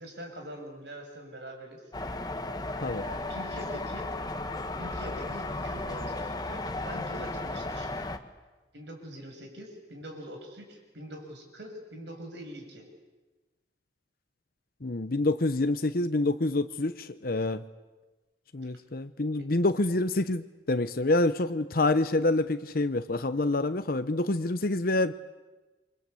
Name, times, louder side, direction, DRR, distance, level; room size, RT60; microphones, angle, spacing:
voice 1, 0.0-1.8 3.0-4.1 4.8-7.9 8.7-12.9 19.4-19.5, equal, 80° right, 4 dB, 7.0 m, -43 dB
sound 1, 1.9-8.2, left 2 dB, 25° left, 1.5 m, -35 dB
voice 2, 14.8-17.6 18.5-25.1, left 2 dB, 55° left, 10 dB, 0.9 m, -27 dB
28.5 x 25.0 x 8.4 m, 1.2 s
head